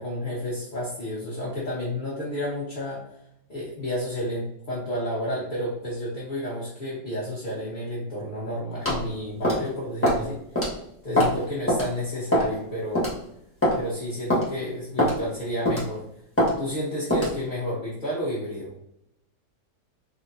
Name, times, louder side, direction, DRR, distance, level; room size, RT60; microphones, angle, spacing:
voice 1, 0.0-3.0 3.5-10.8 11.0-13.1 13.7-16.0 16.6-18.7, equal, 35° left, -7 dB, 0.9 m, -31 dB
sound 1, 8.9-9.0 9.4-9.7 10.0-10.2 10.6-10.7 11.2-11.4 11.7-11.8 12.3-12.6 13.0-13.1 13.6-13.8 14.3-14.5 15.0-15.2 15.7-15.9 16.4-16.5 17.1-17.3, equal, 10° left, 1.3 m, -22 dB
4.1 x 3.0 x 2.6 m, 0.77 s
omnidirectional pair, 1.7 m